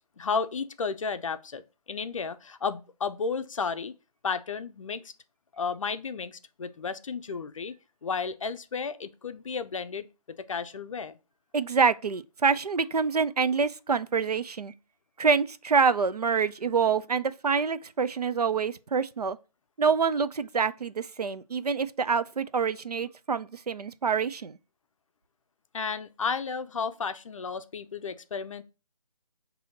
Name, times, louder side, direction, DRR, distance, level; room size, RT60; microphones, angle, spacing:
voice 1, 0.2-1.6 1.9-3.9 4.2-5.0 5.6-7.8 8.0-10.1 10.4-11.2 25.7-28.6, left 5 dB, 55° left, 0.5 m, -33 dB
voice 2, 11.5-14.7 15.2-19.4 19.8-24.6, right 5 dB, 80° right, 0.4 m, -26 dB
6.2 x 2.7 x 2.6 m
figure-of-eight pair, 145°, 20 cm